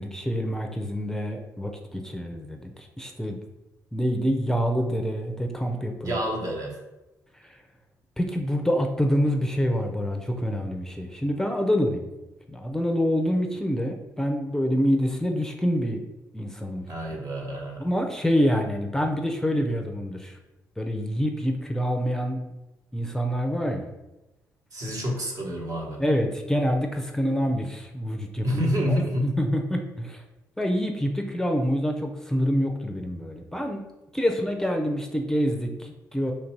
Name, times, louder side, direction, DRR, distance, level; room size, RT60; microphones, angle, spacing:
voice 1, 0.0-3.4 3.9-6.2 7.4-7.6 8.2-12.1 12.5-16.0 16.3-16.9 17.8-20.4 20.8-22.4 22.9-23.9 26.0-29.0 29.2-30.2 30.6-33.8 34.1-36.3, equal, 5° left, 3 dB, 0.5 m, -26 dB
voice 2, 6.0-6.8 16.9-17.9 24.7-26.0 28.4-29.3, equal, 55° right, -1 dB, 1.2 m, -28 dB
3.2 x 2.6 x 4.5 m, 1.0 s
supercardioid pair, 65°, 7 cm